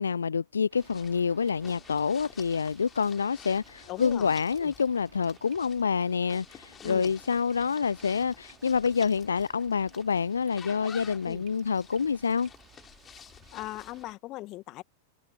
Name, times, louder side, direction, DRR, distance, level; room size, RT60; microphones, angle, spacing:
voice 1, 0.0-12.5, left 6 dB, 70° left, 0.6 m, -27 dB
sound 1, 0.7-14.2, right 15 dB, 35° right, 4.5 m, -59 dB
sound 2, 0.8-14.1, left 8 dB, 20° left, 3.5 m, -51 dB
voice 2, 3.9-4.3 4.6-4.7 6.8-7.1 11.2-11.4 13.5-14.8, left 18 dB, 40° left, 1.9 m, -39 dB
figure-of-eight pair, 90°, 0 cm